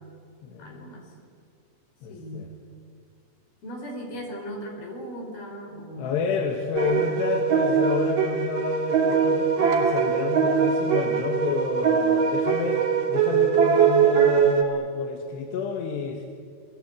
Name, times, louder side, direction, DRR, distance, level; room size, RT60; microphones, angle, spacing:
voice 1, 0.6-1.1 2.1-2.5 3.6-6.2 6.8-7.4, equal, 50° left, 3 dB, 6.0 m, -38 dB
voice 2, 2.0-2.5 6.0-16.3, left 5 dB, 65° left, 4 dB, 3.3 m, -29 dB
sound 1, 6.8-14.6, right 7 dB, 45° right, 3.9 m, -22 dB
29.0 x 21.5 x 8.9 m, 2.4 s
omnidirectional pair, 5.8 m